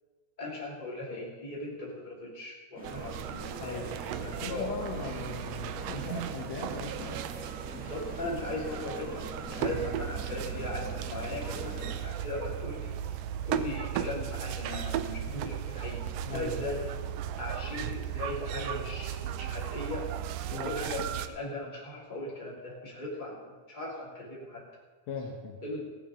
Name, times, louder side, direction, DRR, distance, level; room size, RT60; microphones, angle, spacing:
voice 1, 0.4-3.8 4.1-4.7 5.9-6.1 7.7-13.2 13.4-17.0 17.4-20.0 20.5-24.6 25.6-25.8, left 2 dB, 15° left, -5 dB, 3.2 m, -38 dB
sound 1, 2.8-12.0, equal, 5° right, 0.9 m, -45 dB
sound 2, 2.8-21.3, right 10 dB, 80° right, 1.5 m, -36 dB
voice 2, 3.6-7.3 9.6-9.8 16.3-16.7 20.5-20.8 25.1-25.6, left 4 dB, 70° left, 0 dB, 2.4 m, -39 dB
15.5 x 9.9 x 5.2 m, 1.3 s
omnidirectional pair, 3.4 m